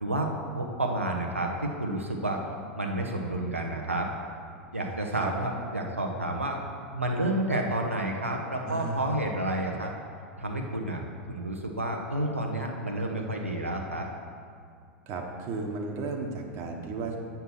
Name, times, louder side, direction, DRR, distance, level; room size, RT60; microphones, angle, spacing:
voice 1, 0.5-2.4 2.7-4.1 4.7-6.6 6.9-9.9 10.4-11.0 11.3-14.1, right 1 dB, 90° right, 0 dB, 0.8 m, -30 dB
voice 2, 8.7-9.1 15.1-17.2, right 3 dB, 40° right, 2 dB, 1.1 m, -34 dB
7.8 x 5.7 x 6.1 m, 2.3 s
figure-of-eight pair, 85°, 7 cm